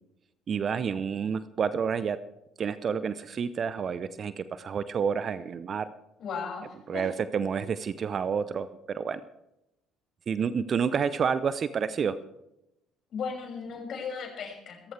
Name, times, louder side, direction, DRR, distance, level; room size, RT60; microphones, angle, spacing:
voice 1, 0.5-2.2 2.6-5.9 6.9-9.2 10.3-12.2, right 6 dB, 45° right, 15 dB, 0.7 m, -29 dB
voice 2, 6.2-7.1 13.1-14.9, left 5 dB, 50° left, 1 dB, 6.5 m, -36 dB
27.5 x 14.5 x 3.4 m, 0.86 s
figure-of-eight pair, 50°, 0 cm